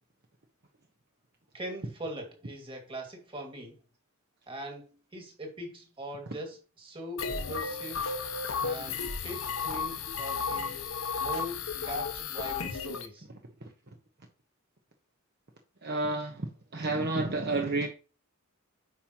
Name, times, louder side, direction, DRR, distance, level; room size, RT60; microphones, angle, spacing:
voice 1, 1.5-3.8 4.5-8.0 8.6-10.8 11.2-13.3, right 1 dB, 25° right, 2.3 m, -41 dB
sound 1, 7.2-13.1, left 5 dB, 70° left, 1.0 m, -33 dB
voice 2, 15.8-16.5 16.7-17.9, right 2 dB, 50° right, 1.2 m, -30 dB
9.3 x 5.5 x 3.1 m
head